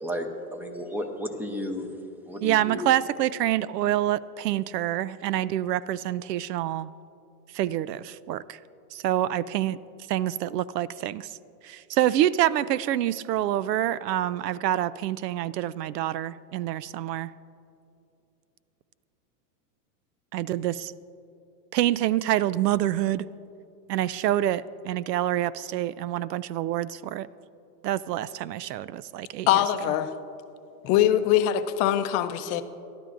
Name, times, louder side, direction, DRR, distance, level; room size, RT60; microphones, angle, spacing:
voice 1, 0.0-1.9 2.3-2.8, equal, 5° right, 5 dB, 0.7 m, -33 dB
voice 2, 2.4-6.9 7.5-8.6 8.9-9.8 10.1-11.4 11.6-17.3 20.3-20.9 21.7-23.3 23.9-27.3 27.8-29.6, right 12 dB, 90° right, 19 dB, 0.6 m, -27 dB
voice 3, 29.5-30.1 30.8-32.6, left 11 dB, 30° left, 10 dB, 0.5 m, -22 dB
23.0 x 12.0 x 2.5 m, 2.7 s
supercardioid pair, 135°, 47 cm